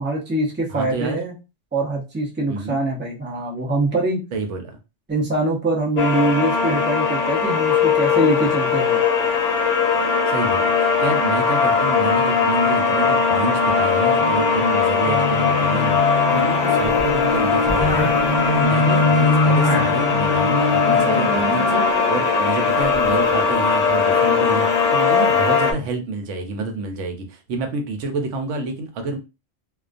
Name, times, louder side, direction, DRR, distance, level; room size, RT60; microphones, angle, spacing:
voice 1, 0.0-1.3 1.7-4.2 5.1-9.0, right 2 dB, 15° right, -2 dB, 0.4 m, -23 dB
voice 2, 0.7-1.2 2.5-2.8 4.3-4.8 10.3-18.2 18.5-29.2, right 3 dB, 85° right, 5 dB, 1.0 m, -28 dB
sound 1, 6.0-25.7, left 5 dB, 80° left, 0.9 m, -19 dB
sound 2, 14.2-23.3, left 2 dB, 50° left, 0.7 m, -25 dB
Bowed string instrument, 15.0-21.7, left 5 dB, 50° right, 0.7 m, -29 dB
2.3 x 2.2 x 2.4 m, 0.28 s
omnidirectional pair, 1.2 m